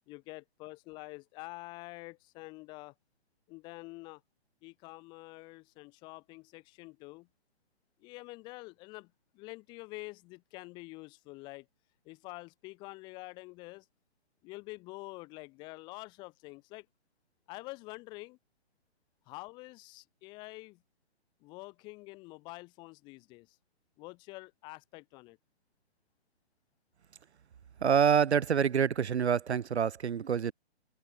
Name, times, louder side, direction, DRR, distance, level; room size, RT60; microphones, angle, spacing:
voice 1, 0.1-2.9 3.5-4.2 4.6-7.3 8.0-11.7 12.1-13.8 14.4-16.9 17.5-18.4 19.3-20.8 21.4-23.5 24.0-25.4, left 23 dB, 15° left, 0.7 m, -47 dB
voice 2, 27.8-30.5, right 7 dB, 75° right, 0.6 m, -26 dB
figure-of-eight pair, 130°, 33 cm